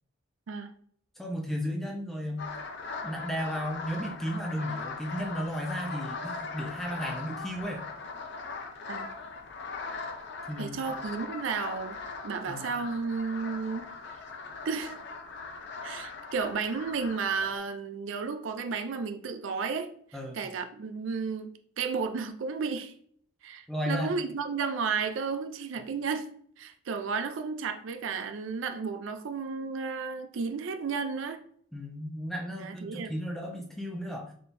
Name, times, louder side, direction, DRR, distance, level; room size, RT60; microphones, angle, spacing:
voice 1, 1.2-2.5 3.0-7.8 10.5-10.9 12.5-12.7 20.1-20.4 23.7-24.2 31.7-34.3, equal, ahead, 0.6 m, -34 dB
sound 1, 2.4-17.6, left 4 dB, 55° left, 0.5 m, -40 dB
voice 2, 10.6-12.0 12.2-13.9 14.6-15.0 15.8-19.9 20.3-21.5 21.8-22.9 23.4-26.3 26.6-31.4 32.6-33.1, right 5 dB, 65° right, 0.4 m, -33 dB
4.3 x 3.6 x 2.6 m
head